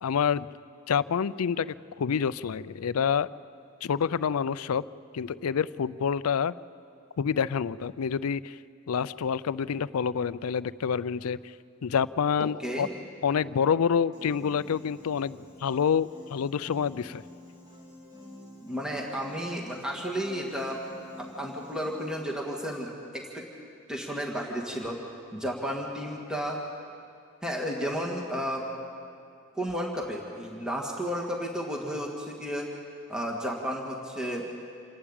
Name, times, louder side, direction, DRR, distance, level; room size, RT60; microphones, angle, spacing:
voice 1, 0.0-0.5 0.9-3.3 3.8-4.8 5.1-6.5 7.2-8.6 8.9-11.4 11.8-12.9 13.2-17.2, left 7 dB, 85° left, 18 dB, 0.4 m, -27 dB
voice 2, 12.4-12.9 18.6-20.8 21.2-23.5 23.9-25.0 25.3-26.6 27.4-28.6 29.5-32.7 33.1-34.5, equal, 5° right, -2 dB, 1.8 m, -33 dB
Piano, 14.1-22.1, left 1 dB, 20° right, 3.0 m, -49 dB
27.0 x 12.0 x 8.8 m, 2.4 s
head